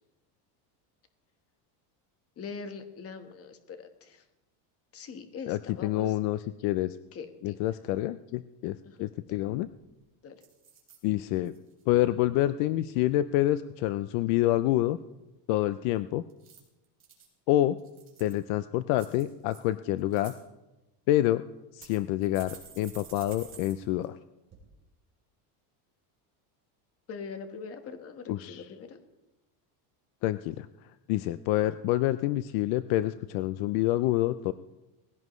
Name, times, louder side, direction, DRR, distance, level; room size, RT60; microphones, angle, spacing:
voice 1, 2.4-4.2 4.9-6.1 7.1-7.6 8.8-9.1 10.2-10.4 27.1-29.0, left 5 dB, 30° left, 7 dB, 1.4 m, -42 dB
voice 2, 5.5-7.0 7.4-9.7 11.0-11.5 11.9-15.0 15.5-16.2 17.5-17.8 18.2-20.3 21.1-21.4 21.7-24.1 28.3-28.7 30.2-30.7 31.1-34.5, left 15 dB, 65° left, 13 dB, 0.6 m, -27 dB
sound 1, 9.3-9.4 9.6-10.0 10.4-11.0 11.5-11.8 16.3-17.3 17.8-18.4 18.9-19.6 20.0-20.4 21.1-21.2 21.8-23.7 24.0-24.1 24.5-24.6, right 6 dB, 30° right, 4.0 m, -51 dB
19.5 x 16.5 x 3.2 m, 1.0 s
cardioid pair, 155°, 46 cm